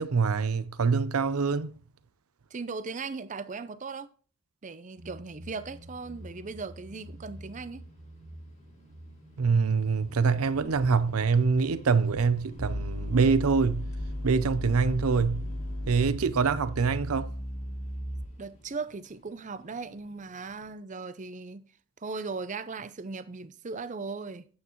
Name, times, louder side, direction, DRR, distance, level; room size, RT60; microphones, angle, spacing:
voice 1, 0.0-1.8 9.4-13.9 14.2-15.5 15.9-17.3, right 5 dB, 85° right, 0.6 m, -25 dB
voice 2, 2.5-4.1 4.6-7.9 18.4-21.7 22.0-24.5, right 4 dB, 35° right, 0.5 m, -38 dB
sound 1, 5.0-17.1, equal, 65° right, 1.3 m, -50 dB
sound 2, 5.5-20.7, left 1 dB, 30° left, 1.8 m, -53 dB
sound 3, 12.6-18.6, left 1 dB, 90° left, 4.5 m, -35 dB
9.5 x 8.4 x 3.1 m
head